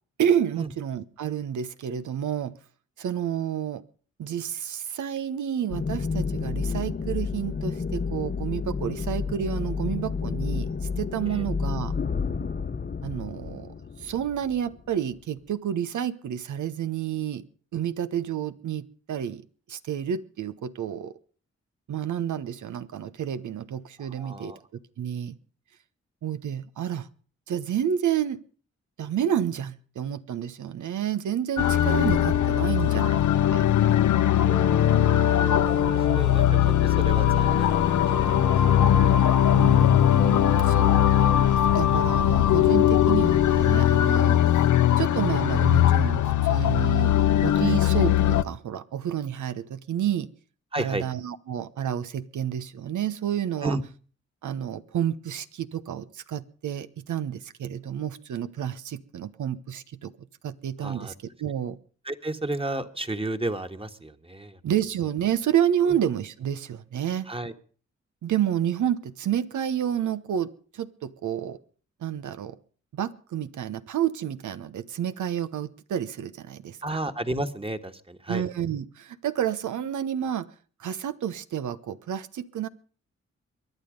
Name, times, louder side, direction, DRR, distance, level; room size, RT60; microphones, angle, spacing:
voice 1, 0.2-2.6 3.0-3.8 4.2-10.7 11.0-11.9 13.0-13.7 14.0-17.4 17.7-19.4 19.7-21.2 21.9-24.5 25.0-25.4 26.2-27.1 27.5-28.4 29.0-33.2 33.5-33.6 39.5-44.7 45.0-50.3 50.8-53.8 54.4-60.1 60.4-61.1 61.4-61.8 64.6-67.3 68.2-71.6 72.0-72.6 72.9-77.0 78.3-80.5 80.8-82.7, right 9 dB, 85° right, 1.0 m, -30 dB
sound 1, 5.7-15.0, left 5 dB, 35° left, 0.9 m, -30 dB
voice 2, 24.0-24.6 31.7-32.0 35.6-39.2 50.7-51.0 53.6-53.8 60.8-61.1 62.0-64.6 65.9-66.0 67.2-67.5 76.8-78.4, right 2 dB, 20° right, 1.7 m, -33 dB
sound 2, 31.6-48.4, left 11 dB, 80° left, 0.7 m, -20 dB
sound 3, 31.9-33.9 34.3-36.4 37.2-39.2 40.1-41.5, left 2 dB, 20° left, 1.4 m, -37 dB
23.0 x 9.9 x 5.2 m
cardioid pair, 50°, 29 cm